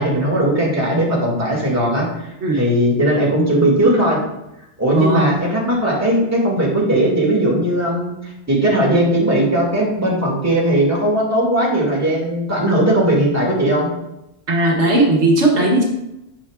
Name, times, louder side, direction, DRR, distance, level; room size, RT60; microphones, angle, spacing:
voice 1, 0.0-2.1 2.5-4.2 4.8-13.9, right 1 dB, 15° right, -4 dB, 2.0 m, -18 dB
voice 2, 4.9-5.3 14.5-15.8, right 2 dB, 75° right, 0 dB, 1.4 m, -16 dB
9.9 x 5.4 x 2.4 m, 0.89 s
omnidirectional pair, 1.2 m